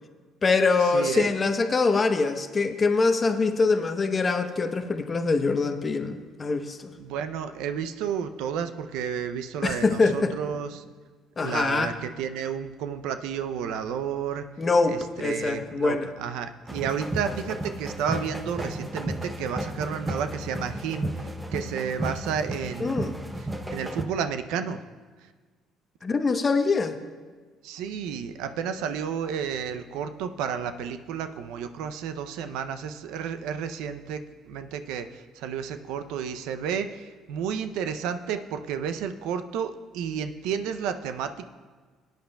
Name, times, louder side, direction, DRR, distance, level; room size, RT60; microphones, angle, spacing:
voice 1, 0.4-6.9 9.6-10.3 11.4-11.9 14.6-16.1 22.8-23.1 26.0-27.0, left 4 dB, 35° left, 7 dB, 0.8 m, -24 dB
voice 2, 0.9-1.3 7.0-10.8 11.4-14.5 14.9-23.2 23.7-24.8 27.6-41.5, right 7 dB, 80° right, 9 dB, 0.5 m, -31 dB
sound 1, 16.7-24.0, right 1 dB, 15° right, 0.7 m, -33 dB
18.0 x 9.0 x 2.3 m, 1.4 s
supercardioid pair, 80°, 0 cm